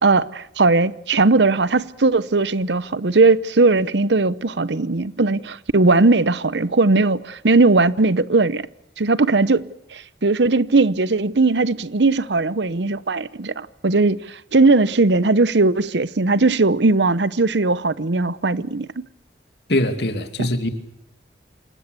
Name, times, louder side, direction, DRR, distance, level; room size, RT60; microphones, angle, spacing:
voice 1, 0.0-8.6 9.0-19.0 20.4-20.5, right 3 dB, 85° right, 0.9 m, -18 dB
voice 2, 19.7-20.7, left 1 dB, 70° left, 2.6 m, -22 dB
27.5 x 20.0 x 8.3 m
head